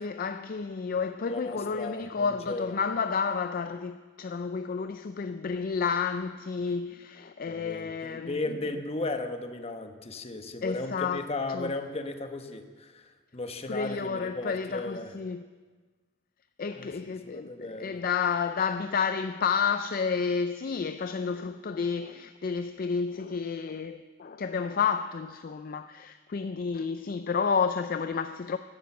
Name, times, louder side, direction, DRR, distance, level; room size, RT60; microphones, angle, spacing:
voice 1, 0.0-8.6 10.6-11.7 13.7-15.5 16.6-28.6, left 5 dB, 45° left, 0.4 m, -31 dB
voice 2, 1.3-2.8 7.5-15.1 16.8-18.0, left 2 dB, 30° left, 1.0 m, -36 dB
12.0 x 11.5 x 7.1 m
head